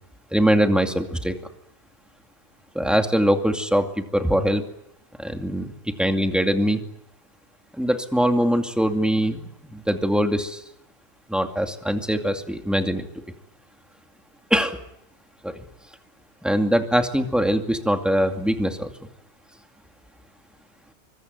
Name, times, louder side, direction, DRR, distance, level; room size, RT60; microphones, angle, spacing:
voice 1, 0.3-1.4 2.7-4.6 5.2-6.8 7.8-10.6 11.3-13.1 14.5-14.8 15.4-15.6 16.4-18.9, equal, ahead, 5 dB, 2.3 m, -22 dB
25.0 x 23.0 x 9.4 m, 0.77 s
omnidirectional pair, 1.1 m